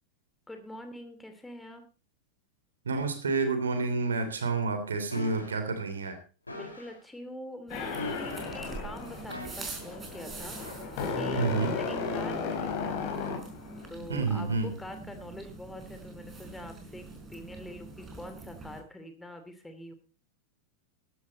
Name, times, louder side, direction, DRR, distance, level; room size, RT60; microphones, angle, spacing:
voice 1, 0.5-1.8 6.5-13.2 13.9-19.9, left 1 dB, 5° left, 7 dB, 2.7 m, -45 dB
voice 2, 2.8-6.2 11.4-11.8 14.1-14.7, right 3 dB, 70° right, 9 dB, 3.1 m, -29 dB
sound 1, 5.1-5.6 6.5-7.0 7.9-8.6 9.3-9.9 10.6-10.8, left 2 dB, 80° left, 4.2 m, -40 dB
sound 2, 7.7-13.9, left 4 dB, 45° left, 4.6 m, -35 dB
sound 3, 7.7-18.8, right 3 dB, 15° right, 4.9 m, -45 dB
15.5 x 12.5 x 4.0 m, 0.34 s
figure-of-eight pair, 90°, 0 cm